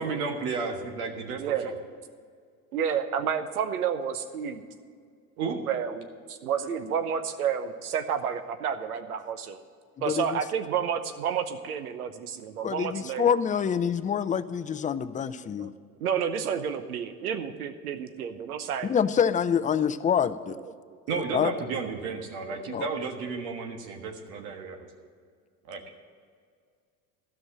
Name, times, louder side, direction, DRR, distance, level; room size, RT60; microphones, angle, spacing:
voice 1, 0.0-1.7 5.4-5.6 21.1-24.8 25.7-25.8, right 4 dB, 65° right, 3 dB, 1.6 m, -32 dB
voice 2, 1.4-1.8 2.7-4.6 5.5-9.6 10.0-13.3 15.3-15.7 16.0-18.9 19.8-19.9 20.5-21.0 21.5-22.6 23.7-23.8, right 7 dB, 85° right, 9 dB, 1.0 m, -31 dB
voice 3, 10.1-10.4 12.6-15.7 18.9-20.6 21.3-21.5 22.7-22.9, left 7 dB, 20° left, 13 dB, 0.4 m, -26 dB
13.0 x 6.3 x 8.7 m, 2.1 s
hypercardioid pair, 75°, 43 cm